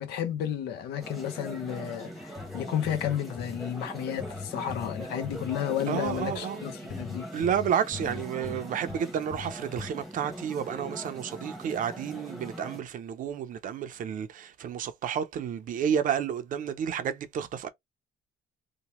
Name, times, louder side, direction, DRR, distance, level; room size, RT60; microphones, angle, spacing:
voice 1, 0.0-7.3, left 9 dB, 75° left, 0.7 m, -32 dB
sound 1, 1.0-12.8, equal, ahead, 1.0 m, -41 dB
sound 2, 2.2-3.6 4.2-5.6 6.1-6.4 6.9-9.0 9.3-9.9, left 6 dB, 15° left, 0.3 m, -41 dB
voice 2, 5.9-6.6 7.3-17.7, right 8 dB, 55° right, 0.5 m, -31 dB
2.9 x 2.2 x 2.9 m
cardioid pair, 110°, 17 cm